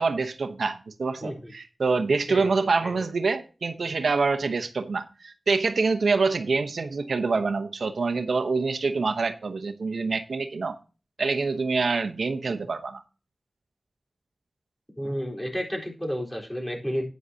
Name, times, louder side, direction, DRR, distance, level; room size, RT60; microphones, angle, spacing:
voice 1, 0.0-10.8 11.2-13.0, right 4 dB, 90° right, 0.9 m, -26 dB
voice 2, 1.2-1.5 2.3-2.5 2.8-3.1 15.0-17.0, equal, 15° left, 4.0 m, -31 dB
11.5 x 9.4 x 2.8 m
wide cardioid pair, 65°, 0 cm